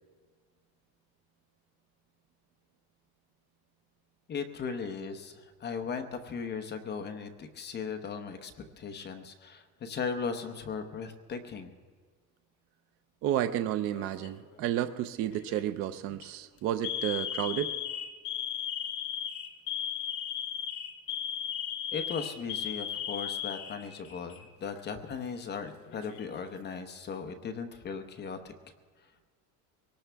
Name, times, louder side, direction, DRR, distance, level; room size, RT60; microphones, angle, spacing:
voice 1, 4.3-11.7 21.9-28.5, left 5 dB, 25° left, 6 dB, 0.8 m, -37 dB
voice 2, 13.2-17.8, right 11 dB, 35° right, 10 dB, 0.4 m, -31 dB
Alarm, 13.9-14.4 15.3-15.6 16.1-16.3 16.8-24.4 24.7-24.8 25.7-26.4, left 9 dB, 85° left, 2.5 m, -36 dB
23.0 x 18.5 x 3.4 m, 1.5 s
cardioid pair, 170°, 44 cm